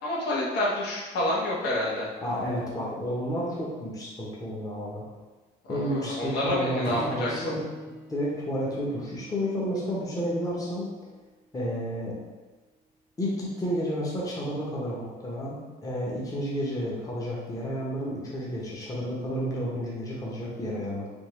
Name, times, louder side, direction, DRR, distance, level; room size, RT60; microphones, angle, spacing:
voice 1, 0.0-2.1 5.7-7.5, left 1 dB, 80° left, -5 dB, 1.1 m, -28 dB
voice 2, 2.2-5.1 5.7-7.6 8.1-10.9 11.5-12.1 13.2-21.1, equal, 20° left, -5 dB, 0.8 m, -31 dB
Strum, 6.8-11.2, right 2 dB, 80° right, 0.6 m, -44 dB
3.5 x 2.5 x 3.0 m, 1.3 s
cardioid pair, 110°, 17 cm